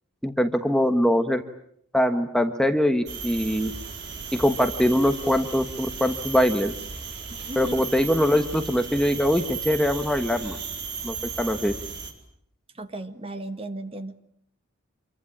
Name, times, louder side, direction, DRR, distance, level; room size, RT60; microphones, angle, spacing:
voice 1, 0.2-1.4 1.9-3.7 4.3-6.7 7.6-10.6 11.0-11.8, equal, 5° left, 7 dB, 1.3 m, -22 dB
sound 1, 3.1-12.1, right 5 dB, 55° right, 4.9 m, -35 dB
voice 2, 7.3-7.9 12.7-14.2, right 1 dB, 25° right, 9 dB, 1.8 m, -36 dB
27.0 x 24.0 x 8.8 m, 0.69 s
head